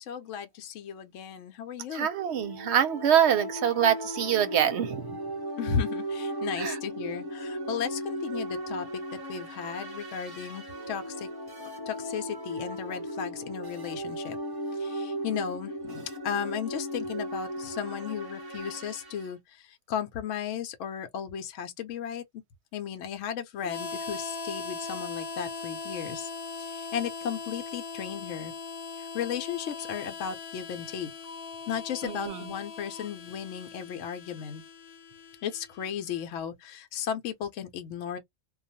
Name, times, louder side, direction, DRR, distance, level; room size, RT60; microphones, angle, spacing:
voice 1, 0.0-2.1 5.6-11.3 11.9-14.4 14.7-22.2 22.7-26.3 26.6-28.5 28.9-31.1 31.7-34.6 35.4-38.2, left 8 dB, 75° left, 0.9 m, -35 dB
voice 2, 1.9-5.2 6.6-6.8 32.0-32.5, right 9 dB, 65° right, 0.8 m, -25 dB
sound 1, 2.0-19.3, equal, 25° right, 0.6 m, -37 dB
Harmonica, 23.6-36.3, left 4 dB, 50° left, 0.4 m, -40 dB
2.3 x 2.2 x 2.6 m
omnidirectional pair, 1.3 m